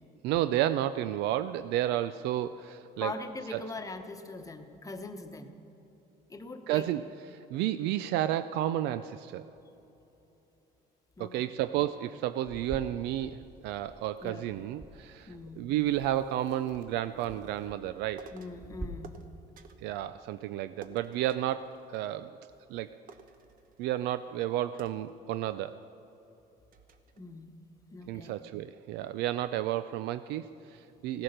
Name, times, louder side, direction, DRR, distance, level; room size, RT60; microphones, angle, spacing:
voice 1, 0.2-3.2 3.5-3.6 6.7-9.5 11.2-18.3 19.8-22.9 23.8-25.8 28.1-31.2, right 13 dB, 90° right, 13 dB, 0.4 m, -32 dB
voice 2, 3.0-5.5 6.3-6.8 11.2-11.3 14.2-14.4 15.3-15.6 18.3-19.1 27.2-27.5 27.9-28.3, left 3 dB, 20° left, 7 dB, 1.1 m, -41 dB
sound 1, 12.4-18.9, right 2 dB, 15° right, 4.0 m, -48 dB
sound 2, 18.2-18.6 19.0-19.9 20.8-22.4 22.7-22.8 23.1-24.1 24.8-25.7 26.2-26.3 26.7-27.2, right 6 dB, 55° right, 1.0 m, -53 dB
16.5 x 10.0 x 6.6 m, 3.0 s
cardioid pair, 110°, 17 cm